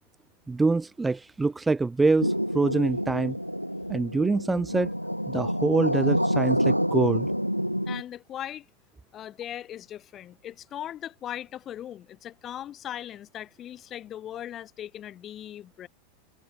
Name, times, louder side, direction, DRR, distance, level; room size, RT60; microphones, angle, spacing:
voice 1, 0.5-3.4 3.9-4.9 5.3-7.3, right 3 dB, 10° right, 1.0 m, -25 dB
sound 1, 2.2-8.0, equal, 90° right, 0.9 m, -27 dB
voice 2, 7.9-8.7 9.1-15.9, left 11 dB, 30° left, 2.8 m, -39 dB
figure-of-eight pair, 90°, 0 cm